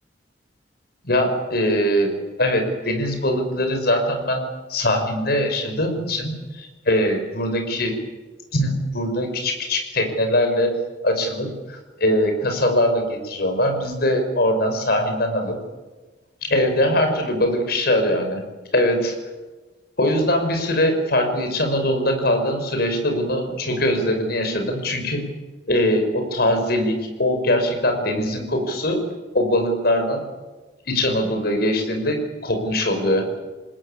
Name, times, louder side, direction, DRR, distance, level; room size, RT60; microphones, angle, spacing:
voice 1, 1.0-2.1 2.4-4.4 4.7-7.9 8.5-10.7 11.0-15.6 16.4-18.4 18.7-19.1 20.0-25.3 25.7-29.0 29.3-30.2 30.9-33.4, left 1 dB, 60° left, 5 dB, 5.8 m, -22 dB
28.0 x 20.0 x 8.8 m, 1.2 s
head